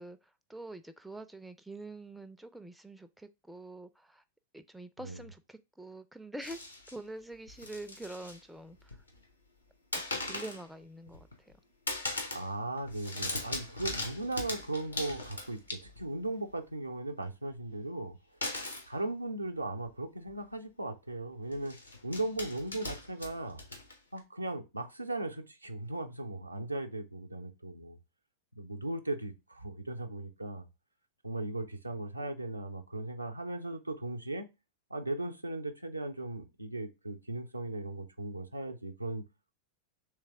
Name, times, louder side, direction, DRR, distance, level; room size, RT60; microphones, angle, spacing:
voice 1, 0.0-4.2 4.5-6.6 6.9-9.0 9.9-11.5, right 2 dB, 5° right, 0.3 m, -46 dB
sound 1, 6.4-7.0 7.5-8.4 8.7-9.2 9.9-10.7 11.1-11.6 11.9-12.5 12.8-16.2 18.4-18.9 19.9-20.0 20.3-20.4 21.5-24.2, left 2 dB, 80° left, 0.9 m, -39 dB
voice 2, 12.3-18.2 18.9-21.8 22.0-23.6 24.1-28.0 28.6-30.7 31.2-34.5 34.9-39.2, right 2 dB, 85° right, 0.5 m, -37 dB
3.3 x 3.2 x 3.4 m
figure-of-eight pair, 90°, 0 cm